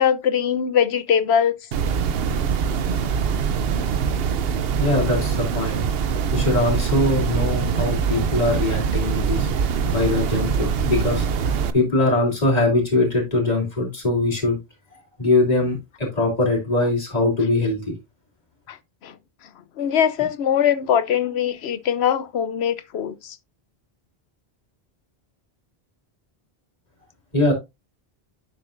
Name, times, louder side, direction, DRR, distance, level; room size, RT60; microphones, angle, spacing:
voice 1, 0.0-1.6 18.7-18.8 19.0-19.1 19.8-23.4, left 8 dB, 85° left, 1.0 m, -21 dB
sound 1, 1.7-11.7, right 6 dB, 70° right, 0.9 m, -23 dB
voice 2, 4.8-5.8 6.3-9.5 9.8-14.6 15.2-17.9 27.3-27.5, left 2 dB, 40° left, 3.2 m, -22 dB
9.6 x 7.0 x 2.5 m
omnidirectional pair, 1.0 m